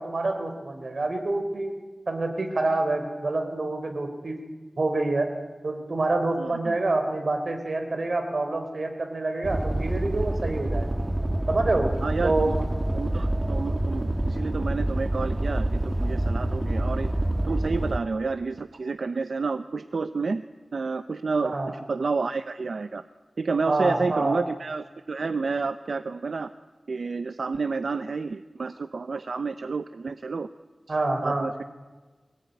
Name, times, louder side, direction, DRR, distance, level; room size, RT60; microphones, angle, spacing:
voice 1, 0.0-1.7 2.1-4.4 4.8-5.3 5.6-10.9 11.5-11.9 12.2-12.6 21.4-21.7 23.7-24.4 30.9-31.4, right 2 dB, 60° right, 5 dB, 4.0 m, -27 dB
voice 2, 6.4-6.8 12.0-12.6 12.9-17.1 17.4-20.4 20.7-23.0 23.4-26.5 26.9-30.5 31.2-31.5, right 4 dB, 85° right, 10 dB, 0.8 m, -30 dB
sound 1, 9.4-18.0, right 1 dB, 30° right, 1.6 m, -27 dB
24.5 x 18.5 x 9.4 m, 1.3 s
wide cardioid pair, 75°, 0 cm